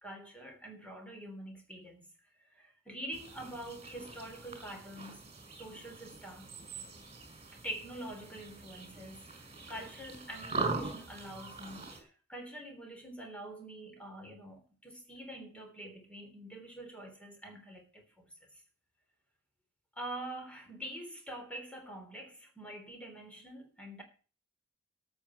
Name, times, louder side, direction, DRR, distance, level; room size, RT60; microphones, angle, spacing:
voice 1, 0.0-2.1 2.5-5.3 5.5-6.5 7.5-9.3 9.7-18.3 20.0-24.0, right 1 dB, 5° left, 3.4 m, -45 dB
sound 1, 3.1-12.0, right 3 dB, 30° right, 4.2 m, -42 dB
13.0 x 7.2 x 7.3 m
head